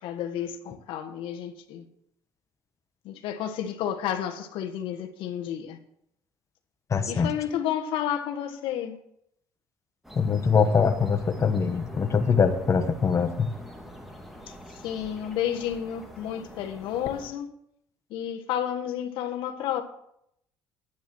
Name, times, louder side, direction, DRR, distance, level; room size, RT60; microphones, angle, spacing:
voice 1, 0.0-1.8 3.0-5.8 7.1-9.0 14.8-17.5 18.1-19.8, left 10 dB, 80° left, 1.4 m, -31 dB
voice 2, 6.9-7.3 10.1-13.5, left 5 dB, 35° left, 1.1 m, -23 dB
sound 1, 10.0-17.3, equal, ahead, 2.2 m, -45 dB
10.5 x 8.8 x 6.2 m
cardioid pair, 100°, 9 cm